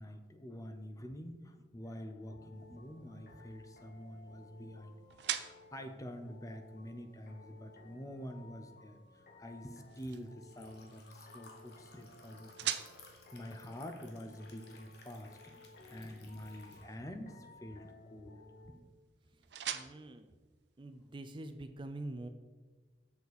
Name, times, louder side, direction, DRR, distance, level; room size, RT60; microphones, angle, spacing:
voice 1, 0.0-12.7 13.3-15.6 15.9-18.9, equal, 20° left, 7 dB, 0.6 m, -47 dB
sound 1, 1.8-18.7, left 2 dB, 50° left, 1.0 m, -58 dB
sound 2, 2.5-21.4, right 10 dB, 80° right, 0.5 m, -48 dB
Liquid, 8.6-16.9, left 3 dB, 70° left, 1.3 m, -60 dB
voice 2, 19.7-20.3 20.8-22.3, right 2 dB, 30° right, 8 dB, 0.4 m, -45 dB
6.9 x 6.7 x 4.2 m, 1.3 s
head